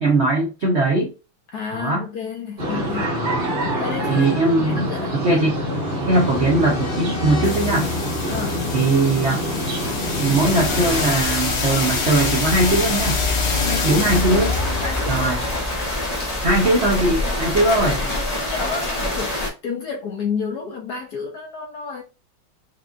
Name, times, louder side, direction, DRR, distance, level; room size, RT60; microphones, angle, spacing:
voice 1, 0.0-1.1 1.7-2.0 3.1-3.4 4.1-5.6 6.1-7.9 8.7-9.4 10.2-13.2 13.8-14.5 15.1-15.4 16.4-18.0, right 2 dB, 70° right, 0.6 m, -20 dB
voice 2, 1.5-3.2 3.8-4.3 4.6-5.2 8.3-8.7 13.6-14.2 14.8-16.2 17.6-22.0, left 5 dB, 65° left, 1.0 m, -31 dB
sound 1, 2.6-11.1, equal, 35° right, 1.1 m, -26 dB
sound 2, 5.7-17.6, left 3 dB, 85° left, 1.9 m, -26 dB
sound 3, 14.1-19.5, left 1 dB, 40° left, 0.5 m, -26 dB
5.3 x 2.3 x 2.5 m
omnidirectional pair, 2.3 m